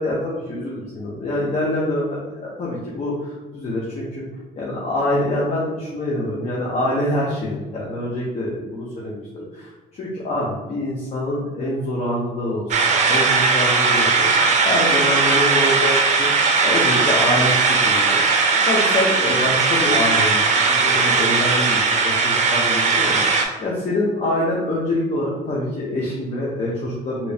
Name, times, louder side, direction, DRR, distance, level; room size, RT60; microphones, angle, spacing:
voice 1, 0.0-4.2 4.6-9.2 9.5-16.3 16.6-18.4 18.7-20.4 20.7-27.3, left 1 dB, 40° left, -5 dB, 0.8 m, -25 dB
sound 1, 12.7-23.5, right 4 dB, 45° right, 0.6 m, -18 dB
3.0 x 3.0 x 2.8 m, 1.2 s
cardioid pair, 110°, 17 cm